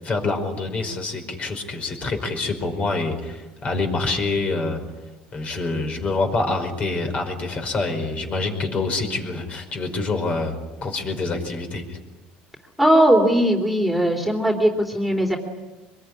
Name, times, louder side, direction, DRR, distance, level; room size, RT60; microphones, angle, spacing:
voice 1, 0.0-4.8 5.3-12.0, left 3 dB, 35° left, 5 dB, 5.2 m, -26 dB
voice 2, 12.8-15.4, right 1 dB, ahead, 1 dB, 3.5 m, -19 dB
24.5 x 22.0 x 10.0 m, 1.1 s
supercardioid pair, 115°, 4 cm